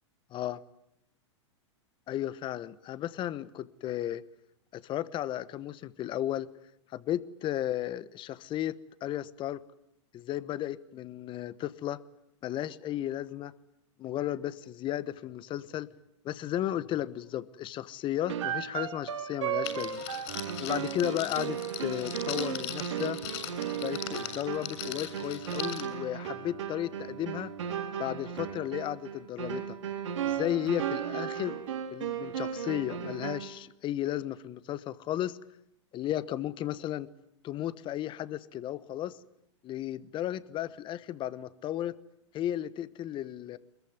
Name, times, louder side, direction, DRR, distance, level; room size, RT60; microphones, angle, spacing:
voice 1, 2.1-4.2 4.7-6.5 6.9-9.6 10.1-12.0 12.4-13.5 14.0-15.9 16.2-20.1 20.6-23.2 23.7-27.5 28.0-29.8 30.2-31.6 31.9-35.4 35.9-37.1 37.4-39.2 39.6-42.0 42.3-43.6, left 12 dB, 30° left, 17 dB, 1.2 m, -34 dB
sound 1, 18.3-33.6, right 9 dB, 75° right, 4.3 m, -35 dB
Crackle, 19.6-25.8, left 10 dB, 55° left, 7.5 m, -40 dB
22.5 x 21.5 x 9.6 m, 0.80 s
hypercardioid pair, 115°, 16 cm